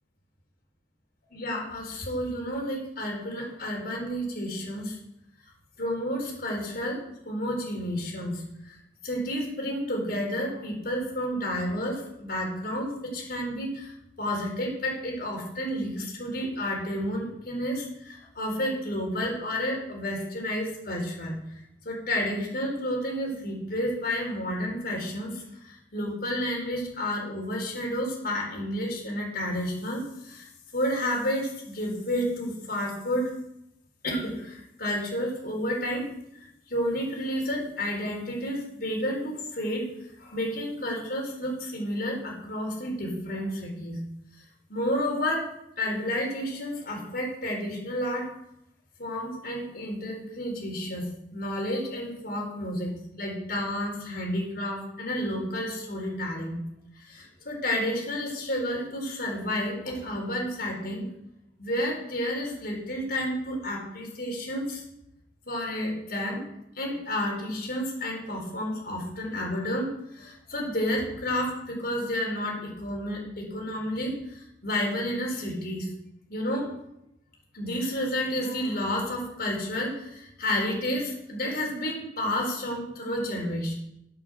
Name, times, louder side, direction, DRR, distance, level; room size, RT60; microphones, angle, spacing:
voice 1, 1.3-5.0 5.8-8.8 9.0-21.4 21.8-33.3 34.0-36.1 36.7-39.9 40.2-44.0 44.7-45.5 45.8-48.3 49.0-56.6 57.0-61.1 61.6-64.8 65.5-66.4 66.7-75.9 76.3-76.7 77.5-83.7, equal, 55° left, -1 dB, 4.2 m, -31 dB
9.7 x 7.8 x 7.5 m, 0.84 s
head